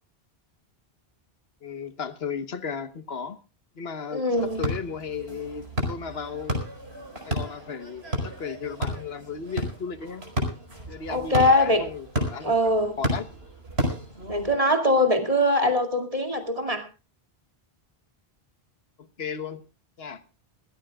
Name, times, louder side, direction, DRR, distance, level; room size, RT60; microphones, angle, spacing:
voice 1, 1.6-3.4 3.8-6.6 7.3-10.2 10.9-12.5 13.0-13.3 19.0-19.6 20.0-20.2, left 6 dB, 75° left, 1.4 m, -35 dB
voice 2, 4.1-4.6 11.1-11.8 12.4-13.0 14.3-16.9, left 1 dB, 35° right, 2.5 m, -22 dB
sound 1, 4.4-14.5, equal, 85° right, 5.1 m, -32 dB
22.5 x 16.5 x 2.4 m
omnidirectional pair, 1.0 m